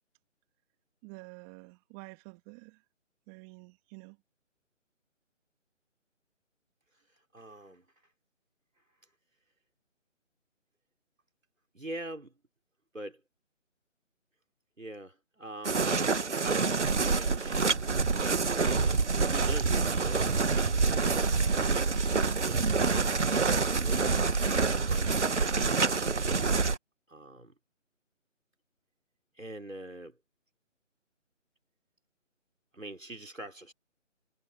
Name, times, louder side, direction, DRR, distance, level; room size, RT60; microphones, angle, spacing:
voice 1, 1.0-2.8 3.3-4.2, right 32 dB, 10° right, 2.3 m, -49 dB
voice 2, 6.9-8.1 8.8-9.1 11.7-12.3 12.9-13.2 14.8-18.7 19.2-20.3 21.1-21.8 22.4-22.7 23.4-26.1 27.1-27.5 29.3-30.2 32.7-33.7, right 1 dB, 90° right, 5.4 m, -45 dB
sound 1, 15.6-26.8, right 4 dB, 65° right, 1.8 m, -27 dB
figure-of-eight pair, 155°, 38 cm